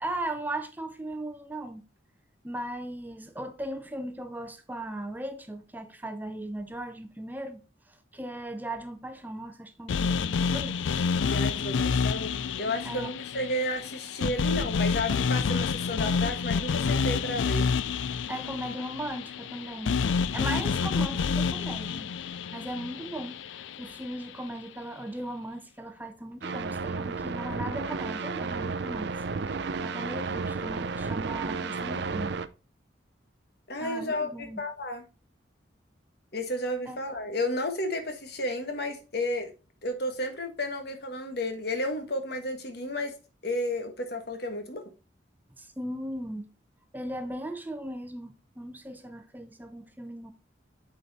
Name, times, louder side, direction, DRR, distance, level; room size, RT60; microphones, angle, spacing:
voice 1, 0.0-1.8 2.4-7.6 7.9-11.1 12.8-13.1 18.3-20.0 20.3-22.1 22.5-29.1 29.4-32.4 33.8-34.6 36.9-37.0 45.6-46.5 46.9-50.3, right 1 dB, 10° right, 0.6 m, -38 dB
sound 1, 9.9-24.0, left 5 dB, 85° left, 0.4 m, -29 dB
voice 2, 11.2-17.7 33.7-35.0 36.3-39.5 39.8-43.1 43.4-44.8, left 1 dB, 60° left, 1.5 m, -32 dB
sound 2, 26.4-32.5, right 4 dB, 60° right, 0.5 m, -32 dB
8.4 x 4.5 x 4.1 m
head